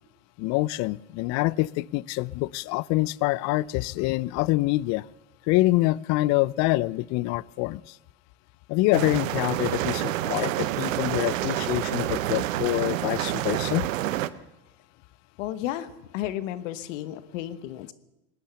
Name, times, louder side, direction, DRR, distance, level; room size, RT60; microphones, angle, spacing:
voice 1, 0.4-5.1 5.5-8.0 8.7-13.9, left 19 dB, 45° left, 24 dB, 0.5 m, -25 dB
sound 1, 8.9-14.3, right 14 dB, 90° right, 0.8 m, -28 dB
voice 2, 15.4-17.9, left 13 dB, 70° left, 15 dB, 1.1 m, -33 dB
19.5 x 10.0 x 6.9 m, 1.0 s
supercardioid pair, 115°, 38 cm